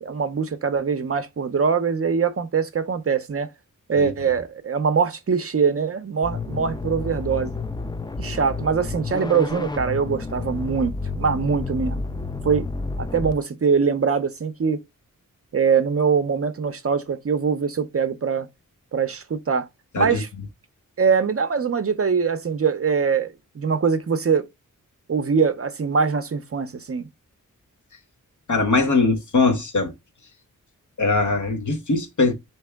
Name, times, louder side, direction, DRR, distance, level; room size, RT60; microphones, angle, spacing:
voice 1, 0.0-3.5 3.9-7.5 8.2-12.0 12.4-12.7 13.0-14.8 15.5-18.5 18.9-19.7 20.0-20.3 21.0-24.4 25.1-27.1, right 6 dB, 45° right, 0.5 m, -23 dB
sound 1, 6.2-13.3, left 3 dB, 15° left, 0.3 m, -30 dB
voice 2, 28.5-29.9 31.0-32.3, left 3 dB, 65° left, 1.1 m, -21 dB
4.6 x 2.9 x 3.4 m
wide cardioid pair, 90°, 33 cm